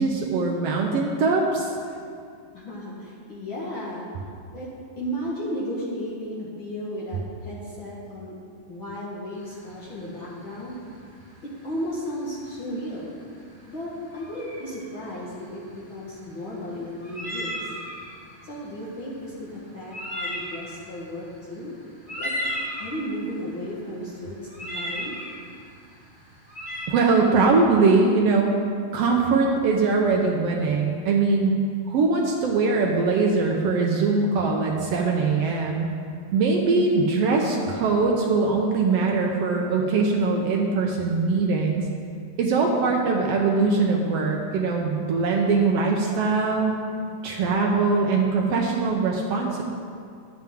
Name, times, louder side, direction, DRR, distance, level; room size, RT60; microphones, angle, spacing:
voice 1, 0.0-1.7 26.9-28.6 28.9-31.5 31.9-35.9 36.3-41.8 42.4-46.7 47.2-49.6, right 4 dB, 80° right, 0 dB, 1.4 m, -22 dB
voice 2, 2.5-4.1 4.5-4.7 5.0-8.3 8.7-10.8 11.6-13.1 13.7-17.7 18.4-21.7 22.2-22.3 22.8-25.2, equal, 50° left, -6 dB, 1.6 m, -34 dB
sound 1, 9.4-26.9, equal, 20° left, 1.7 m, -36 dB
10.5 x 9.1 x 3.5 m, 2.3 s
omnidirectional pair, 3.5 m